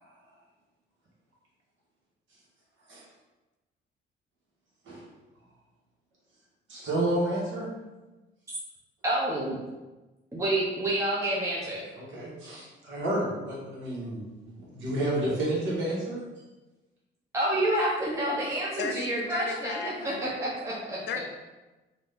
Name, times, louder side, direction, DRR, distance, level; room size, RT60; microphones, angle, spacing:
voice 1, 6.7-7.7 12.0-16.2, right 1 dB, 70° right, -5 dB, 1.3 m, -30 dB
voice 2, 9.0-9.6 10.3-11.8 17.3-21.0, right 1 dB, 15° right, -6 dB, 0.6 m, -28 dB
voice 3, 18.8-20.4 21.1-21.2, left 6 dB, 60° left, 6 dB, 0.4 m, -35 dB
2.6 x 2.5 x 3.5 m, 1.1 s
cardioid pair, 90°, 20 cm